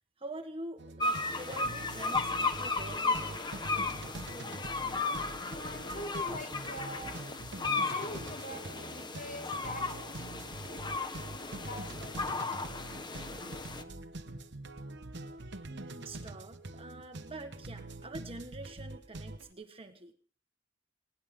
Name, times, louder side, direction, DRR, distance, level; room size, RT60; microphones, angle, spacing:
voice 1, 0.2-3.4 15.7-20.1, right 2 dB, 30° right, 7 dB, 1.4 m, -46 dB
sound 1, 0.8-19.5, right 2 dB, 60° right, 1.2 m, -45 dB
sound 2, 1.0-13.8, left 3 dB, 20° left, 1.3 m, -35 dB
voice 2, 5.5-7.2 7.6-10.4 10.9-12.2 13.1-13.2, equal, 40° left, 5 dB, 5.7 m, -44 dB
20.0 x 18.0 x 3.7 m, 0.42 s
head